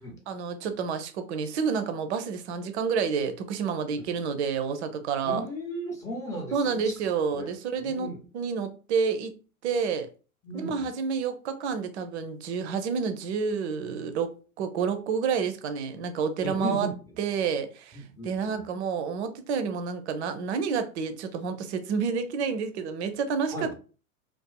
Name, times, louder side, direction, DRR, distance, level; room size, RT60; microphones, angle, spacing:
voice 1, 0.3-5.5 6.5-8.1 8.3-9.3 9.6-10.1 10.5-16.9 17.2-23.8, right 6 dB, 55° right, 0.5 m, -29 dB
voice 2, 5.2-6.9 7.3-7.5 7.8-8.2 10.4-10.9 16.4-16.9 18.1-18.6 23.5-23.8, equal, 10° left, 0.6 m, -35 dB
2.4 x 2.4 x 2.2 m
figure-of-eight pair, 95°, 42 cm